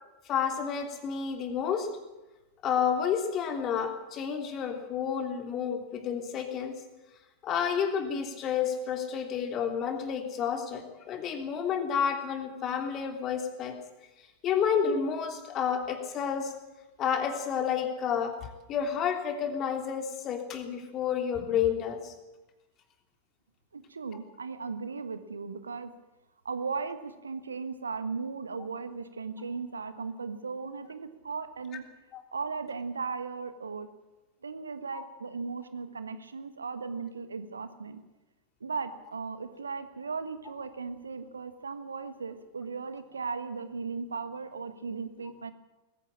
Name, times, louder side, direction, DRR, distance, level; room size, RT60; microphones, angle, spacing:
voice 1, 0.2-1.9 2.6-6.7 7.4-13.8 14.4-16.5 17.0-18.4 18.7-22.1 32.1-32.2 34.9-35.0, left 7 dB, 30° left, 5 dB, 3.2 m, -30 dB
voice 2, 23.7-25.9 26.4-31.9 32.3-33.9 34.4-38.0 38.6-45.5, right 5 dB, 75° right, 11 dB, 1.5 m, -37 dB
20.5 x 15.5 x 8.8 m, 1.1 s
figure-of-eight pair, 90°, 0 cm